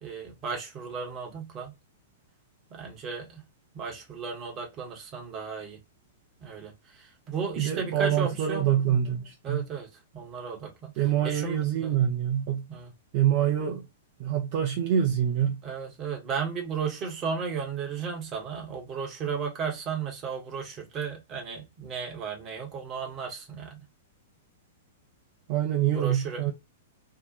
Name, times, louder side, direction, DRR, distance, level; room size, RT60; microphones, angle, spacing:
voice 1, 0.0-1.7 2.7-3.4 3.7-5.8 6.4-6.7 7.0-9.0 9.4-9.9 10.1-10.9 11.2-12.0 12.7-12.9 15.6-23.8 25.9-26.5, right 5 dB, 25° right, 0.9 m, -34 dB
voice 2, 7.6-9.7 11.0-12.7 13.1-13.8 14.2-15.6 25.5-26.5, right 10 dB, 45° right, 0.5 m, -25 dB
2.7 x 2.1 x 2.4 m
figure-of-eight pair, 105°, 0 cm